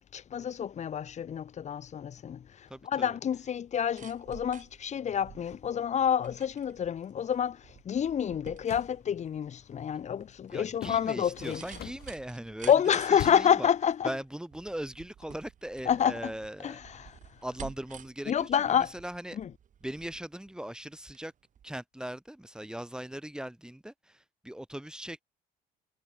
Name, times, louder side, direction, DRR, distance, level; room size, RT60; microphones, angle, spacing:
voice 1, 0.1-2.4 2.9-7.6 7.8-11.6 12.7-14.1 15.9-16.1 18.3-18.9, left 8 dB, 45° left, 1.6 m, -28 dB
voice 2, 2.7-3.2 10.5-12.7 13.1-13.7 14.0-17.1 17.4-19.4 19.8-21.3 21.6-25.2, right 1 dB, 5° right, 5.1 m, -40 dB
sound 1, 3.6-21.3 21.6-21.7, right 9 dB, 50° right, 5.5 m, -52 dB
sound 2, 8.5-9.0 10.7-12.2 13.1-13.7, left 14 dB, 70° left, 1.7 m, -42 dB
cardioid pair, 110°, 17 cm